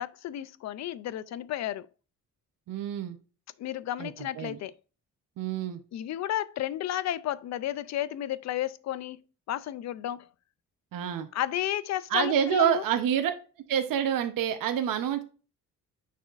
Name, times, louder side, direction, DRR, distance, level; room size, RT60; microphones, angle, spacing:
voice 1, 0.0-1.9 3.6-4.7 5.9-9.2 9.5-10.3 11.3-12.8, left 12 dB, 55° left, 0.4 m, -32 dB
voice 2, 2.7-3.2 4.0-4.6 5.4-5.8 10.9-11.3 12.1-13.3 13.7-15.2, right 9 dB, 75° right, 0.9 m, -27 dB
9.3 x 4.2 x 2.5 m
cardioid pair, 175°, 33 cm